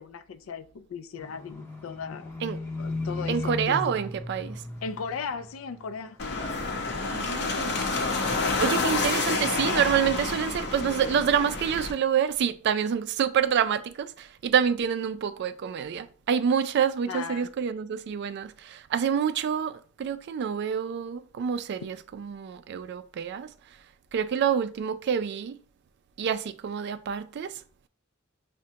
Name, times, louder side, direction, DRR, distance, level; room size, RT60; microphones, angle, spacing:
voice 1, 0.0-2.3 2.8-3.9 4.8-6.2 17.1-17.5, left 5 dB, 70° left, 0.4 m, -37 dB
Livestock farm animals working animals, 1.2-6.0 6.2-6.9 7.4-7.5, left 2 dB, 10° left, 0.7 m, -36 dB
voice 2, 3.3-4.6 7.1-8.1 8.4-23.5 24.1-25.6 26.2-27.5, right 8 dB, 55° right, 0.3 m, -27 dB
sound 1, 6.2-11.9, left 3 dB, 55° left, 0.7 m, -28 dB
5.9 x 2.1 x 2.8 m
head